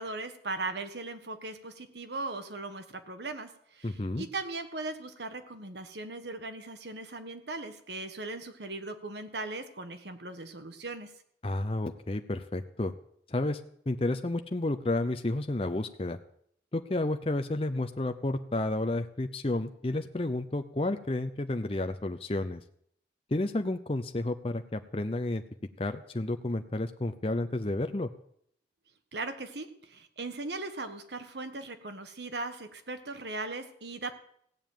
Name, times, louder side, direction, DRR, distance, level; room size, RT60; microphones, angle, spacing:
voice 1, 0.0-11.1 29.1-34.1, right 3 dB, 70° right, 8 dB, 1.5 m, -38 dB
voice 2, 3.8-4.3 11.4-12.9 13.3-13.6 13.9-16.2 16.7-22.6 23.3-25.4 25.8-28.1, left 2 dB, 30° left, 7 dB, 0.7 m, -31 dB
16.0 x 7.2 x 9.2 m, 0.67 s
head